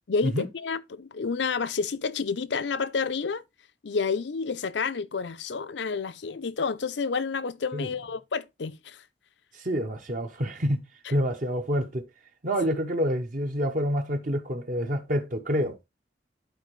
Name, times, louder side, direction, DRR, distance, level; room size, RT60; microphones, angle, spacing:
voice 1, 0.1-3.4 3.8-9.0, left 5 dB, 75° left, 0.6 m, -29 dB
voice 2, 9.5-10.8 11.1-12.1 12.4-15.8, equal, 50° right, 0.9 m, -27 dB
11.5 x 4.5 x 3.2 m
head